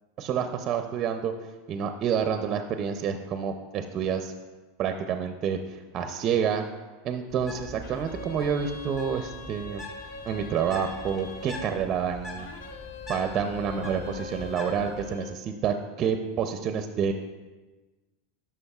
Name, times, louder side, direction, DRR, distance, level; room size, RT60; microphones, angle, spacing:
voice 1, 0.2-4.3 4.8-6.7 7.0-9.8 10.2-12.5 13.1-17.1, right 7 dB, 40° right, 7 dB, 0.5 m, -28 dB
Bird, 7.3-15.1, left 1 dB, 30° left, 2.4 m, -43 dB
sound 1, 7.8-11.8 12.4-15.4, left 3 dB, 85° left, 0.7 m, -42 dB
11.5 x 6.1 x 2.4 m, 1.3 s
supercardioid pair, 120°, 0 cm